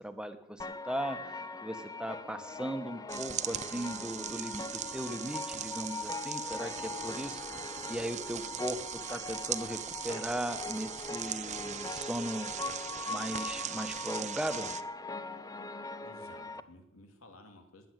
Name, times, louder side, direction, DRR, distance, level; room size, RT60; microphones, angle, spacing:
voice 1, 0.0-9.8 10.0-12.5 13.1-14.7, right 1 dB, 5° right, 8 dB, 1.2 m, -38 dB
sound 1, 0.6-16.6, left 3 dB, 15° left, 0.6 m, -41 dB
sound 2, 1.7-16.7, right 1 dB, 70° right, 1.6 m, -59 dB
sound 3, 3.1-14.8, right 9 dB, 35° right, 0.7 m, -40 dB
voice 2, 16.0-17.9, left 2 dB, 85° left, 5 dB, 3.0 m, -55 dB
20.0 x 7.9 x 9.1 m, 0.93 s
head